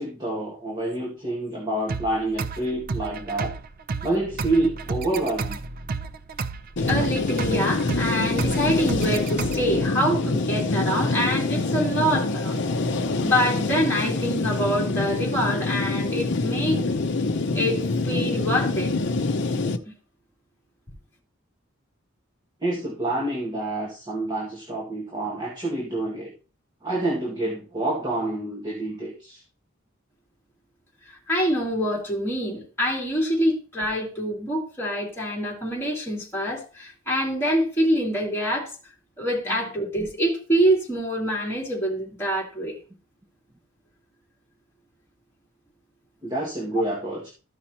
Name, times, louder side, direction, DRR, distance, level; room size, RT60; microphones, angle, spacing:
voice 1, 0.0-3.6 4.0-5.6 22.6-26.3 26.8-29.4 46.2-47.3, right 2 dB, 20° right, 1.8 m, -28 dB
sound 1, 1.9-9.9, right 4 dB, 45° right, 0.5 m, -32 dB
sound 2, 6.8-19.8, left 3 dB, 60° left, 0.7 m, -25 dB
voice 2, 6.8-12.5 13.2-16.8 17.5-18.9 19.8-19.9 31.3-38.7 39.2-42.8, equal, 10° left, 2.8 m, -25 dB
13.5 x 5.7 x 2.9 m
head